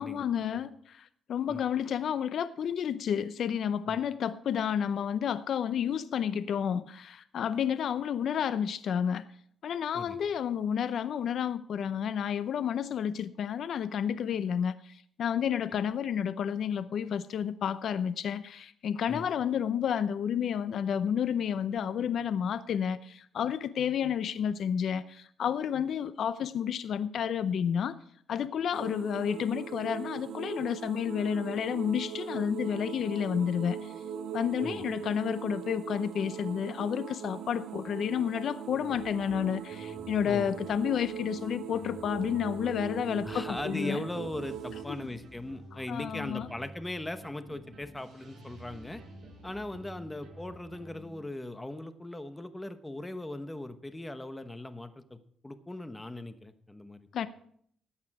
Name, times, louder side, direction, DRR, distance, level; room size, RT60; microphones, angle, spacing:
voice 1, 0.0-9.3 9.6-28.0 28.3-33.9 34.3-44.0 44.9-45.1 45.9-46.5 57.1-57.3, left 8 dB, 65° left, 0.6 m, -31 dB
sound 1, 28.7-44.8, right 8 dB, 70° right, 0.6 m, -40 dB
sound 2, 38.7-51.2, right 1 dB, 55° right, 6.1 m, -50 dB
voice 2, 43.2-49.0 49.4-55.2 55.4-57.3, left 1 dB, 10° left, 1.1 m, -39 dB
13.5 x 8.8 x 4.8 m
cardioid pair, 90°, 0 cm